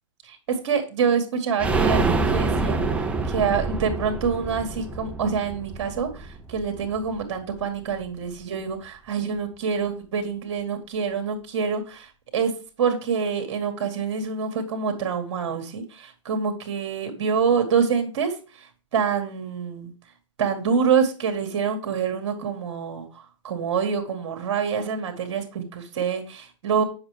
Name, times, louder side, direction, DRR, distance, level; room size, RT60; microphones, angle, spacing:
voice 1, 0.2-2.8 3.3-12.5 12.8-18.3 18.9-19.9 20.4-23.1 23.4-26.8, right 6 dB, 60° right, 6 dB, 1.9 m, -26 dB
sound 1, 1.6-7.2 7.5-7.6 7.9-8.0, right 3 dB, 10° right, 0.7 m, -26 dB
7.9 x 5.6 x 3.4 m, 0.36 s
hypercardioid pair, 135°, 16 cm